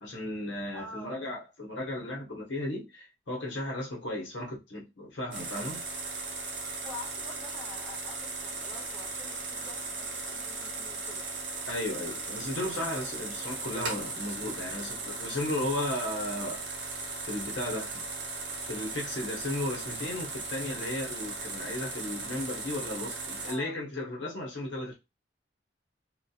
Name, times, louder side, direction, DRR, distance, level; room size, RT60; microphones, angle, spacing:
voice 1, 0.0-5.8 11.7-16.8 17.2-18.0 18.6-24.9, left 1 dB, 85° left, 0.8 m, -35 dB
voice 2, 0.7-1.3 6.8-11.4 23.5-23.8, left 2 dB, 10° left, 0.7 m, -47 dB
sound 1, 5.3-23.5, right 3 dB, 75° right, 0.7 m, -37 dB
2.6 x 2.2 x 2.3 m
head